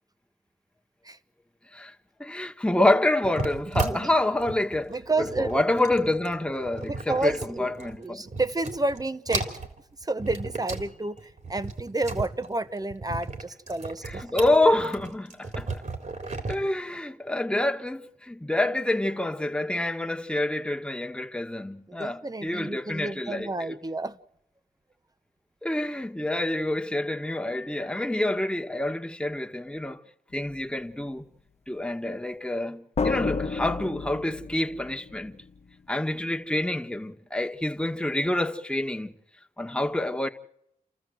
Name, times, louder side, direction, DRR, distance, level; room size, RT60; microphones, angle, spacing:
voice 1, 2.2-4.9 5.4-7.3 7.6-8.2 14.0-15.8 16.5-23.8 25.6-30.0 30.3-31.2 31.7-35.4 35.9-39.1 39.6-40.3, left 1 dB, 5° left, 1.8 m, -27 dB
sound 1, 3.2-8.0 8.3-9.0 9.3-10.9 11.2-16.5, right 3 dB, 55° right, 3.7 m, -35 dB
voice 2, 3.7-4.1 4.9-5.6 6.9-9.5 10.0-14.2 16.2-16.4 21.9-24.2, right 2 dB, 25° right, 1.3 m, -30 dB
sound 2, 30.3-30.6 33.0-35.6, left 4 dB, 45° left, 1.2 m, -31 dB
29.0 x 14.0 x 7.9 m
cardioid pair, 45°, 15 cm